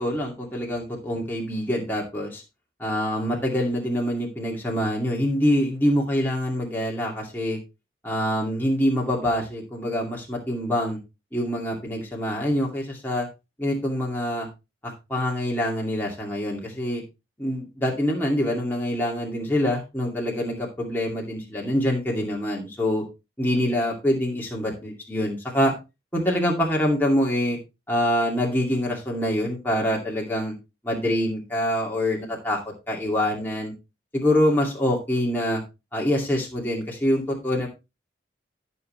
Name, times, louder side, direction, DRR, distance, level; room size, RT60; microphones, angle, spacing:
voice 1, 0.0-2.4 2.8-7.6 8.0-11.0 11.3-13.3 13.6-14.5 14.8-17.0 17.4-23.0 23.4-25.7 26.1-27.6 27.9-30.5 30.8-32.6 32.9-33.7 34.1-35.6 35.9-37.7, equal, 10° left, -2 dB, 2.5 m, -25 dB
14.0 x 6.3 x 3.2 m, 0.26 s
head